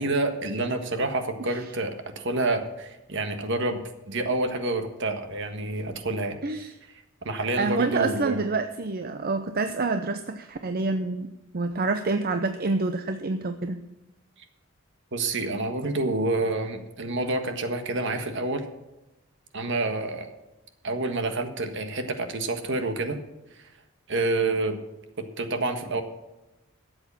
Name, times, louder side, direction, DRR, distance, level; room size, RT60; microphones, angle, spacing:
voice 1, 0.0-3.8 4.1-6.4 7.2-8.4 15.1-18.6 19.5-20.3 20.8-23.2 24.1-24.8 25.4-26.0, right 2 dB, 60° right, 7 dB, 1.5 m, -28 dB
voice 2, 6.4-6.7 7.6-11.3 11.5-13.8, right 3 dB, 45° right, 8 dB, 0.6 m, -27 dB
13.0 x 8.0 x 7.1 m, 1.0 s
head